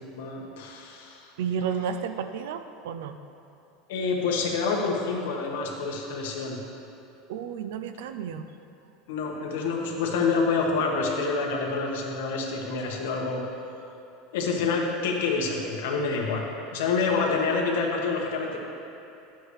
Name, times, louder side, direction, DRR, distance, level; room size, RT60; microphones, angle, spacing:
voice 1, 0.1-1.3 3.9-6.6 9.1-13.4 14.3-16.5 16.7-18.6, left 4 dB, 85° left, 0 dB, 1.4 m, -27 dB
voice 2, 1.4-3.2 7.3-8.5, right 7 dB, 80° right, 9 dB, 0.5 m, -32 dB
11.5 x 7.7 x 3.3 m, 2.8 s
supercardioid pair, 175°, 0 cm